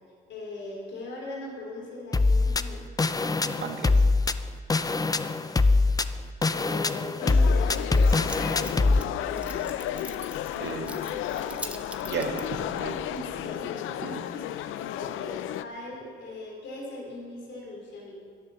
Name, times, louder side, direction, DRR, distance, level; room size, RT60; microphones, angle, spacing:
voice 1, 0.3-2.9 5.2-5.8 6.1-10.0 11.2-12.0 13.1-13.9 14.3-18.1, left 2 dB, 65° left, -1 dB, 3.5 m, -40 dB
sound 1, 2.1-9.0, left 3 dB, 20° left, 0.5 m, -23 dB
voice 2, 3.4-4.0 10.6-11.1 12.0-12.4 12.7-13.0 14.0-14.2, right 5 dB, 65° right, 3 dB, 1.8 m, -34 dB
sound 2, 7.2-15.6, left 12 dB, 80° left, 0.5 m, -33 dB
Keys jangling, 7.4-13.4, right 1 dB, 5° right, 1.1 m, -44 dB
11.0 x 10.5 x 6.9 m, 2.1 s
cardioid pair, 90°, 20 cm